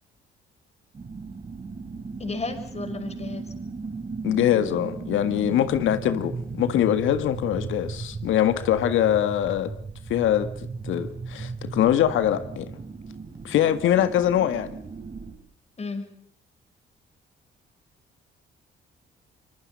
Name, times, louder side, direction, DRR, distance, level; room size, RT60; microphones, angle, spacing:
sound 1, 0.9-15.3, right 4 dB, 35° right, 6.0 m, -36 dB
voice 1, 2.2-3.5 15.8-16.1, left 3 dB, 30° left, 5.6 m, -33 dB
voice 2, 4.2-9.7 10.1-10.5 10.8-12.7 13.4-14.8, left 11 dB, 80° left, 1.7 m, -23 dB
25.0 x 22.5 x 5.5 m
cardioid pair, 90°, 20 cm